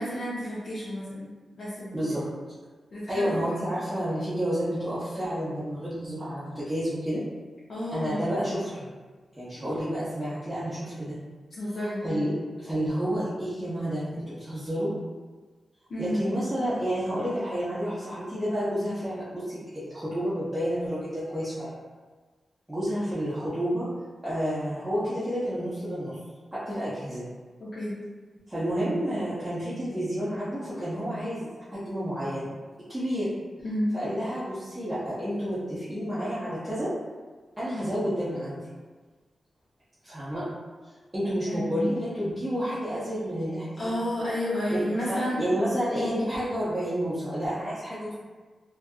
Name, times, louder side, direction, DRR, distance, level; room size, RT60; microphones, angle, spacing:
voice 1, 0.0-2.1 2.9-3.4 7.7-8.3 11.6-12.0 15.9-16.2 27.7-27.9 33.6-33.9 41.5-41.9 43.8-45.4, left 1 dB, 50° left, -9 dB, 0.6 m, -31 dB
voice 2, 3.1-7.2 7.9-8.9 9.4-11.2 11.8-14.9 16.0-21.7 22.7-23.9 24.2-26.2 26.5-27.2 28.5-32.5 32.9-33.3 33.9-36.9 37.6-38.6 40.0-40.4 41.1-43.9 44.7-44.8 45.1-48.1, equal, 5° right, -13 dB, 0.6 m, -30 dB
2.6 x 2.4 x 2.3 m, 1.4 s
wide cardioid pair, 165°, 0 cm